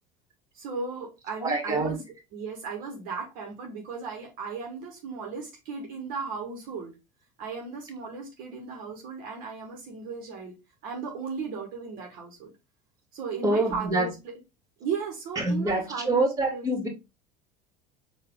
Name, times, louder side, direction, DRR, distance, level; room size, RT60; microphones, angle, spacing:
voice 1, 0.5-2.0 2.3-6.9 7.4-10.5 10.8-12.5 13.1-14.4 14.8-16.7, right 5 dB, 55° right, 1.3 m, -36 dB
voice 2, 1.4-1.9 13.4-14.1 15.4-16.9, right 2 dB, 20° right, 1.9 m, -26 dB
4.7 x 2.7 x 3.8 m
hypercardioid pair, 75°, 18 cm